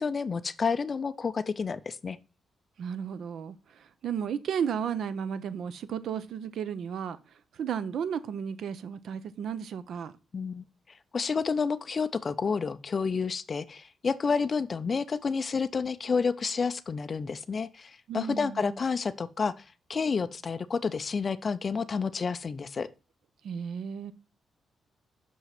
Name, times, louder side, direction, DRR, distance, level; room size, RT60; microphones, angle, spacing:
voice 1, 0.0-2.2 10.3-10.6 11.1-19.6 19.9-22.9, left 5 dB, 30° left, 0.4 m, -30 dB
voice 2, 2.8-7.2 7.5-10.1 18.1-18.8 23.4-24.1, right 7 dB, 60° right, 0.6 m, -34 dB
6.3 x 5.7 x 5.8 m
wide cardioid pair, 175°, 0 cm